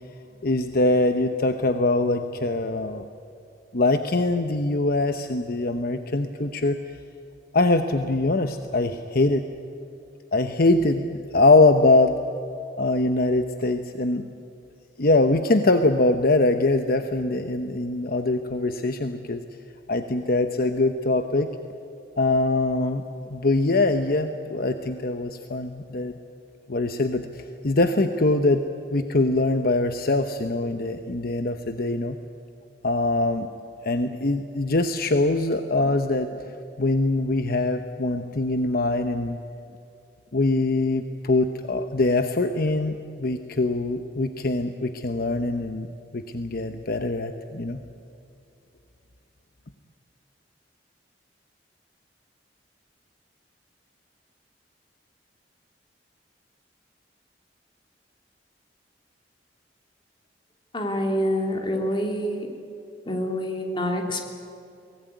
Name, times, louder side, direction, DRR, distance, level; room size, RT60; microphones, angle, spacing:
voice 1, 0.4-3.0 3.7-6.8 7.5-9.4 10.3-12.1 12.8-14.3 15.0-19.4 19.9-21.5 22.2-23.0 23.3-26.1 26.7-28.6 28.9-32.2 32.8-33.5 33.8-36.3 36.8-39.4 40.3-45.9 46.1-47.8, left 2 dB, 55° left, 7 dB, 1.0 m, -23 dB
voice 2, 60.7-62.5 63.1-64.3, equal, 30° left, 2 dB, 3.0 m, -26 dB
23.5 x 18.5 x 9.4 m, 2.6 s
head